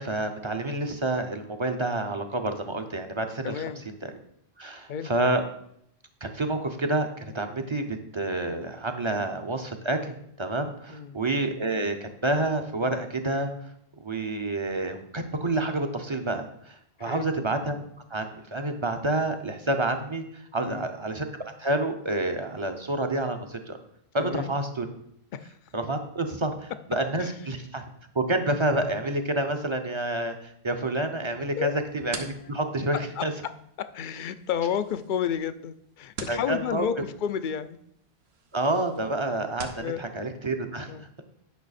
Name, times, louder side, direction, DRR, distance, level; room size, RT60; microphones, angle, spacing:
voice 1, 0.0-3.6 4.6-5.4 6.2-13.5 14.0-17.8 18.1-21.3 21.6-23.8 24.1-24.9 25.7-27.8 28.1-33.3 36.3-36.9 38.5-40.9, right 2 dB, 35° right, 6 dB, 0.7 m, -28 dB
voice 2, 3.4-3.8 4.9-5.1 10.9-11.2 17.0-17.3 20.6-20.9 24.2-24.5 25.3-25.6 27.2-27.3 31.6-31.7 32.9-33.2 33.8-37.8 39.8-40.1 40.9-41.1, left 8 dB, 60° left, 12 dB, 0.6 m, -31 dB
sound 1, 31.6-39.9, right 4 dB, 80° right, 1.1 m, -45 dB
9.3 x 5.6 x 4.1 m, 0.69 s
omnidirectional pair, 1.0 m